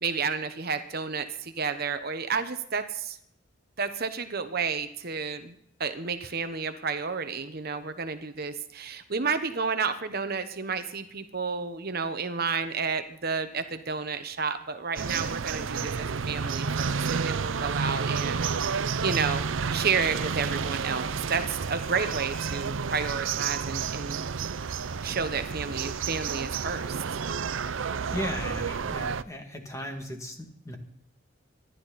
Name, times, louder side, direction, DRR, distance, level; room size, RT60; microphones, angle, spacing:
voice 1, 0.0-3.2 3.8-5.5 5.8-24.2 25.0-27.0, right 5 dB, 50° right, 8 dB, 1.1 m, -31 dB
sound 1, 15.0-29.2, right 5 dB, 80° right, 0.6 m, -30 dB
voice 2, 28.1-30.8, equal, 15° left, 3 dB, 2.4 m, -36 dB
25.5 x 12.0 x 4.2 m, 0.69 s
head